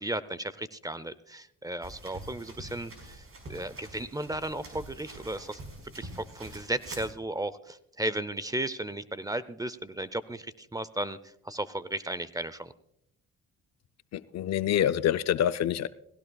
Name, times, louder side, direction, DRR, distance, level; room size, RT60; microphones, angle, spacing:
voice 1, 0.0-5.6 5.9-11.2 11.4-12.7, right 1 dB, 10° right, 17 dB, 0.6 m, -35 dB
sound 1, 1.8-7.1, right 2 dB, 45° right, 4.9 m, -45 dB
voice 2, 14.1-15.9, left 10 dB, 60° left, 13 dB, 0.5 m, -26 dB
19.0 x 16.5 x 2.3 m, 0.76 s
cardioid pair, 90°, 30 cm